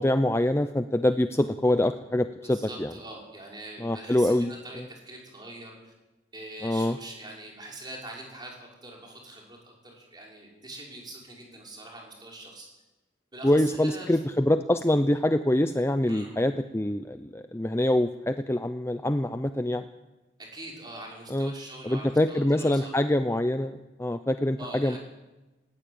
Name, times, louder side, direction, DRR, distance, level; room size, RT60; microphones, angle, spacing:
voice 1, 0.0-2.9 3.8-4.5 6.6-7.0 13.4-19.8 21.3-21.5 21.8-25.0, left 1 dB, 15° left, 9 dB, 0.6 m, -25 dB
voice 2, 2.4-5.9 6.3-12.7 13.3-14.2 16.1-16.3 20.4-22.9 24.6-25.0, right 2 dB, 25° right, -2 dB, 5.6 m, -43 dB
19.5 x 15.5 x 8.7 m, 1.1 s
head